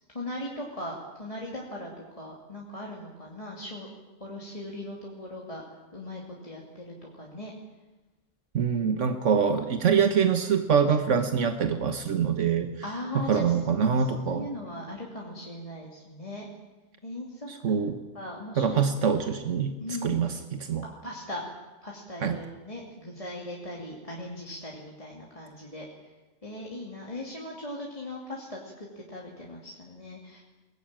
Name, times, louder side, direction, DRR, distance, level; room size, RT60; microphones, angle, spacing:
voice 1, 0.1-3.9 4.2-5.6 5.9-7.5 12.8-16.5 17.0-17.7 18.1-19.1 19.8-20.2 20.8-21.5 21.8-25.9 26.4-30.4, left 1 dB, 30° left, -3 dB, 2.8 m, -39 dB
voice 2, 8.5-12.7 13.3-14.5 17.5-18.0 18.6-19.8 20.0-20.8 22.2-22.4, right 6 dB, 80° right, 7 dB, 1.5 m, -25 dB
22.5 x 19.0 x 8.9 m, 1.1 s
omnidirectional pair, 1.3 m